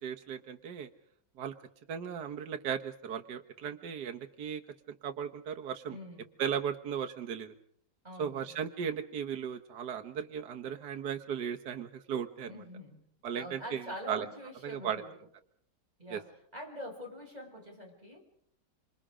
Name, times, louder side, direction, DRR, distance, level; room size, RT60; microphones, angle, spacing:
voice 1, 0.0-0.9 1.4-1.5 1.9-4.6 4.9-6.0 6.4-7.5 8.2-12.6 13.2-14.3 14.6-15.0 16.1-16.2, right 8 dB, 70° right, 4 dB, 1.7 m, -36 dB
voice 2, 5.9-6.3 8.0-8.6 12.4-13.0 13.3-15.1 16.0-16.3 16.5-18.2, equal, 20° right, 1 dB, 6.1 m, -45 dB
27.5 x 26.5 x 5.0 m, 0.65 s
omnidirectional pair, 1.9 m